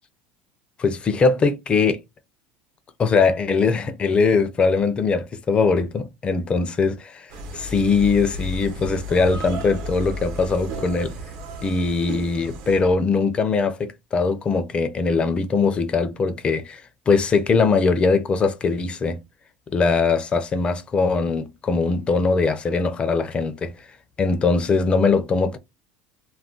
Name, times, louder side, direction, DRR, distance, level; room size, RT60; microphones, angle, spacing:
voice 1, 0.8-2.0 3.0-11.2 11.6-19.2 19.7-23.9 24.2-25.6, left 4 dB, 25° left, 0.4 m, -21 dB
sound 1, 7.3-12.9, equal, 70° right, 0.9 m, -33 dB
2.3 x 2.1 x 3.6 m
cardioid pair, 145°, 5 cm